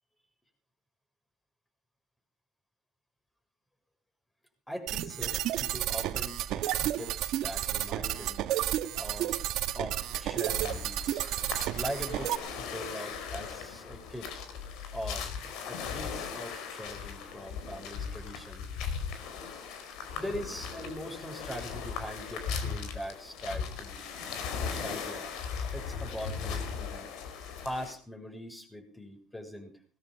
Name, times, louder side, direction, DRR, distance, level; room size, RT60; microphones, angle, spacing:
voice 1, 4.7-8.5 8.9-9.4 9.7-11.2 11.7-14.4 14.9-15.3 15.7-18.7 20.2-24.0 24.6-25.3 25.7-27.1 27.6-29.8, equal, 10° left, 5 dB, 6.8 m, -41 dB
sound 1, 4.9-12.4, right 13 dB, 65° right, 1.7 m, -31 dB
sound 2, 10.0-27.9, left 6 dB, 70° left, 4.6 m, -38 dB
20.0 x 13.0 x 5.5 m, 0.40 s
supercardioid pair, 90°, 0 cm